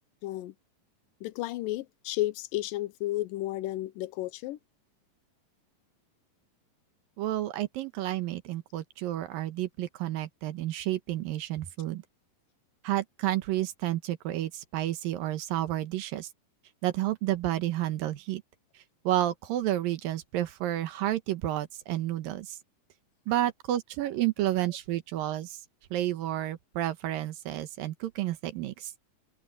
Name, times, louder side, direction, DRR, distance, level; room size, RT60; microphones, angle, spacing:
voice 1, 0.2-0.5 1.2-4.6, left 16 dB, 80° left, 2.4 m, -32 dB
voice 2, 7.2-12.0 12.8-16.3 16.8-18.4 19.0-22.6 23.3-25.6 25.9-28.9, right 14 dB, 80° right, 2.9 m, -30 dB
omnidirectional pair, 4.0 m